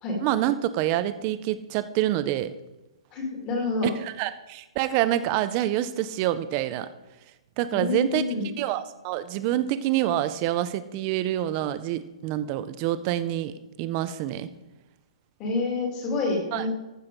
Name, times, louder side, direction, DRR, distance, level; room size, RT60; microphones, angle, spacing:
voice 1, 0.2-2.5 3.8-6.9 7.6-8.2 8.6-14.5 16.5-16.6, right 13 dB, 20° right, 13 dB, 0.4 m, -27 dB
voice 2, 3.1-3.9 7.7-8.5 15.4-16.7, left 3 dB, 15° left, 1 dB, 1.9 m, -28 dB
14.5 x 6.2 x 5.1 m, 1.0 s
hypercardioid pair, 180°, 3 cm